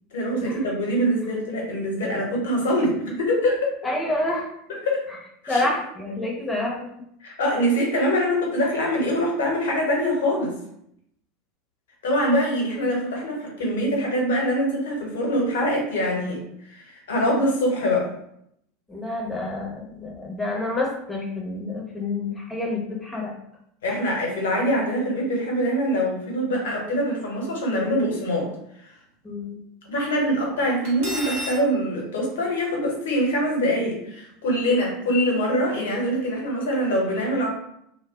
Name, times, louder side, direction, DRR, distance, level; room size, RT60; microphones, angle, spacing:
voice 1, 0.1-3.7 4.7-5.1 5.4-5.7 7.2-10.5 12.0-16.4 16.7-18.1 23.8-28.5 28.8-28.9 29.9-37.5, equal, 65° left, -1 dB, 0.9 m, -24 dB
voice 2, 3.8-4.5 5.5-6.8 18.9-23.3 29.2-29.6, left 2 dB, 10° left, -2 dB, 0.8 m, -28 dB
Cutlery silverware, 30.8-31.6, equal, 55° right, 0.9 m, -31 dB
2.2 x 2.1 x 3.6 m, 0.74 s
figure-of-eight pair, 80°, 0 cm